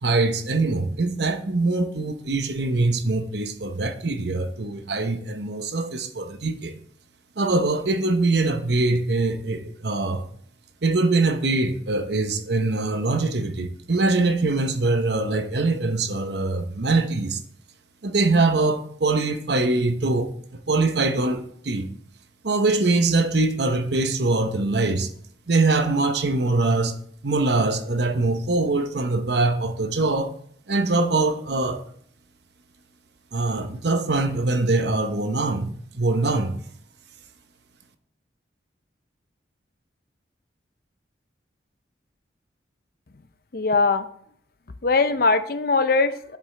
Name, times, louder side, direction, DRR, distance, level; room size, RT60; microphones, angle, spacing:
voice 1, 0.0-6.8 7.4-10.3 10.8-17.4 18.0-20.3 20.7-21.9 22.4-25.1 25.5-27.0 27.2-30.4 30.7-31.8 33.3-36.5, right 3 dB, 65° right, 0.9 m, -23 dB
voice 2, 43.5-44.0 44.8-46.4, left 3 dB, 50° left, 0.6 m, -21 dB
8.6 x 7.4 x 3.3 m
head